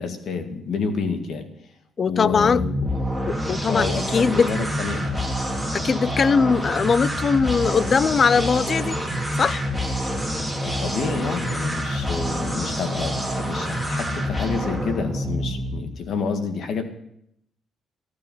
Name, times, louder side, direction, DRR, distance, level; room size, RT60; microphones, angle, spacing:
voice 1, 0.0-1.5 2.1-2.7 3.7-5.2 10.6-16.9, left 5 dB, 65° left, 1.8 m, -29 dB
voice 2, 2.0-2.6 3.3-4.5 5.7-9.0 9.4-9.6, left 5 dB, 45° left, 0.4 m, -20 dB
sound 1, 2.2-16.0, equal, 10° left, 3.3 m, -27 dB
14.5 x 10.5 x 5.6 m
cardioid pair, 90°, 0 cm